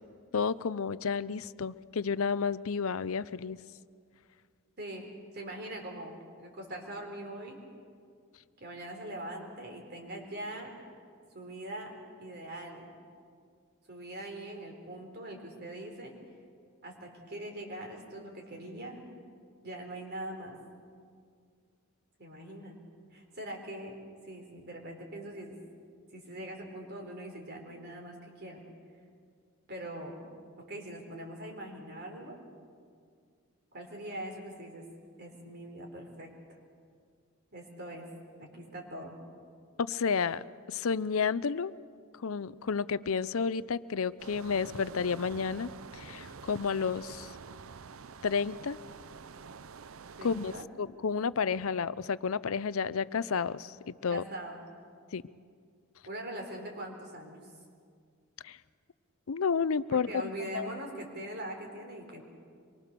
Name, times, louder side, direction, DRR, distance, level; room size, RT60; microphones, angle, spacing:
voice 1, 0.3-3.6 39.8-40.4 40.7-41.7 42.2-47.3 48.2-48.8 50.2-50.5 50.8-54.2 55.1-55.2 58.4-58.6 59.3-60.1 60.5-60.7, left 5 dB, 70° left, 17 dB, 0.6 m, -31 dB
voice 2, 4.8-7.6 8.6-10.7 11.3-12.9 13.9-16.1 16.8-19.0 19.6-20.6 22.2-22.8 23.1-24.0 24.2-25.6 26.1-28.6 29.7-30.2 30.6-32.4 33.7-34.8 35.2-36.3 37.5-38.1 38.4-39.2 50.2-50.7 54.1-54.6 56.0-57.4 59.9-62.2, right 1 dB, 50° right, 2 dB, 4.1 m, -42 dB
sound 1, 44.2-50.7, right 5 dB, 65° right, 0.6 m, -47 dB
25.0 x 23.0 x 6.8 m, 2.1 s
head